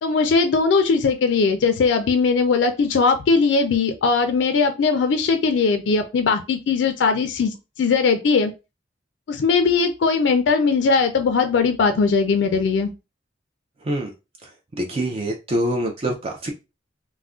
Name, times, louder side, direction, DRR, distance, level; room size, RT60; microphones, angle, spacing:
voice 1, 0.0-8.5 9.3-12.9, left 4 dB, 75° left, 7 dB, 0.4 m, -19 dB
voice 2, 14.8-16.5, right 1 dB, 30° right, 2 dB, 0.4 m, -25 dB
2.4 x 2.1 x 3.5 m, 0.27 s
head